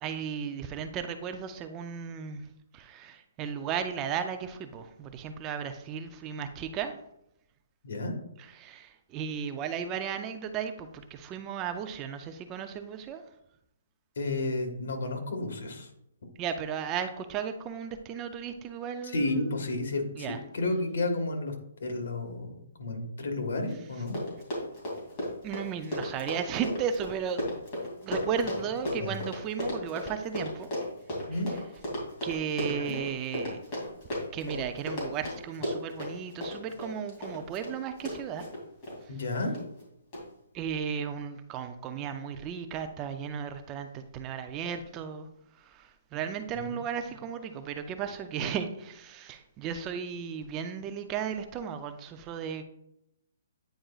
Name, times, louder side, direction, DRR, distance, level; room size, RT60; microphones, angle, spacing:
voice 1, 0.0-2.5 2.7-7.0 8.6-13.2 16.4-19.5 20.2-20.4 25.4-27.4 28.0-30.7 32.2-33.6 34.3-38.5 40.5-45.3 45.6-52.6, right 7 dB, 20° right, 8 dB, 0.4 m, -35 dB
voice 2, 7.8-8.1 14.1-15.9 19.0-20.3 20.5-24.2 28.9-29.2 31.3-31.5 32.6-33.0 39.1-39.6 46.5-46.7, left 2 dB, 70° left, 3 dB, 1.5 m, -32 dB
Run, 23.7-23.8 24.0-39.0 39.5-39.8 40.1-40.2, left 1 dB, 25° left, 2.5 m, -35 dB
9.0 x 4.9 x 2.4 m, 0.79 s
hypercardioid pair, 160°, 0 cm